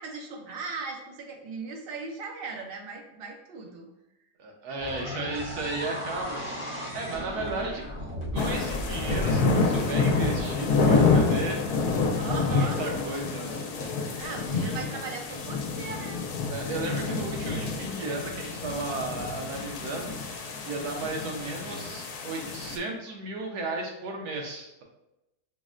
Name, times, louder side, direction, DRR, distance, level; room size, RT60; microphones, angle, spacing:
voice 1, 0.0-3.9 12.1-12.8 14.0-16.2, right 4 dB, 65° right, 2 dB, 0.5 m, -38 dB
voice 2, 4.4-7.9 8.3-11.7 12.4-13.6 16.5-24.8, right 2 dB, 85° right, 1 dB, 1.3 m, -34 dB
sound 1, 4.8-11.1, equal, 25° right, 0.7 m, -36 dB
sound 2, 8.3-22.8, left 4 dB, 75° left, 1.0 m, -28 dB
6.0 x 2.1 x 2.4 m, 0.93 s
omnidirectional pair, 1.6 m